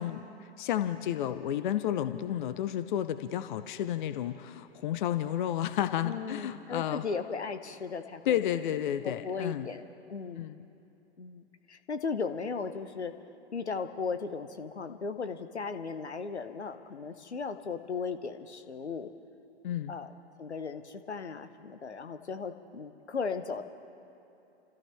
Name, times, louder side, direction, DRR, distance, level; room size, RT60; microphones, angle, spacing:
voice 1, 0.0-7.0 8.3-9.7 10.4-10.6 19.6-19.9, left 11 dB, 45° left, 10 dB, 0.7 m, -31 dB
voice 2, 6.0-8.7 9.0-10.4 11.2-11.4 11.7-13.2 13.5-19.1 19.9-23.6, left 5 dB, 80° left, 9 dB, 1.0 m, -36 dB
29.5 x 14.0 x 3.4 m, 2.8 s
figure-of-eight pair, 110°, 33 cm